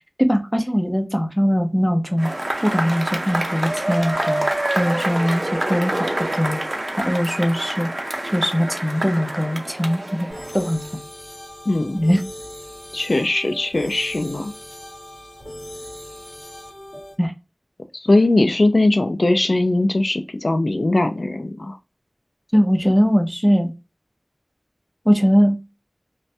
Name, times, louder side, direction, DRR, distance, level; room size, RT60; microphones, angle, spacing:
voice 1, 0.2-2.3 2.6-4.5 4.7-6.6 7.0-7.9 8.3-10.3 10.5-10.8 11.9-12.2 17.2-17.3 22.5-23.7 25.1-25.6, equal, 5° left, 5 dB, 0.6 m, -20 dB
Cheering / Applause / Crowd, 2.2-10.9, right 1 dB, 55° right, 0.5 m, -26 dB
sound 1, 10.3-17.1, equal, 45° left, 1.8 m, -39 dB
voice 2, 11.7-12.0 12.9-14.5 18.0-21.8, left 2 dB, 85° left, 7 dB, 0.4 m, -20 dB
3.1 x 2.2 x 2.6 m, 0.27 s
wide cardioid pair, 45°, 0 cm